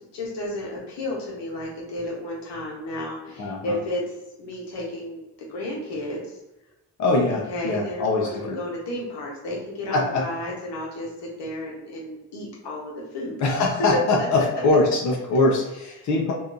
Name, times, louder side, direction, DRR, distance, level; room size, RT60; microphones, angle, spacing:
voice 1, 0.1-4.0 4.4-5.2 5.5-6.4 7.3-13.4 13.9-14.8 16.0-16.1, left 1 dB, 70° left, -3 dB, 1.0 m, -32 dB
voice 2, 3.4-3.8 7.0-8.6 9.9-10.2 13.4-16.3, left 2 dB, 40° left, -1 dB, 0.6 m, -22 dB
2.7 x 2.3 x 2.4 m, 0.97 s
hypercardioid pair, 40°, 43 cm